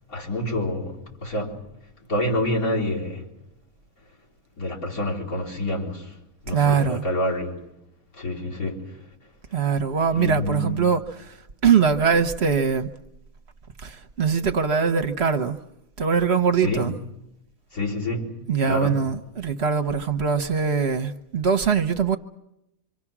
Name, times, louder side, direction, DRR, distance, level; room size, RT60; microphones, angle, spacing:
voice 1, 0.1-1.6 2.1-3.3 4.6-6.1 6.4-7.6 8.2-8.9 10.1-10.8 16.6-16.9 17.7-18.3 18.6-19.0, left 1 dB, 90° left, 4.9 m, -27 dB
voice 2, 6.5-7.0 9.5-11.3 11.6-12.9 13.8-15.6 16.0-17.0 18.5-22.2, right 6 dB, 50° right, 1.2 m, -22 dB
26.0 x 25.5 x 6.1 m
omnidirectional pair, 1.5 m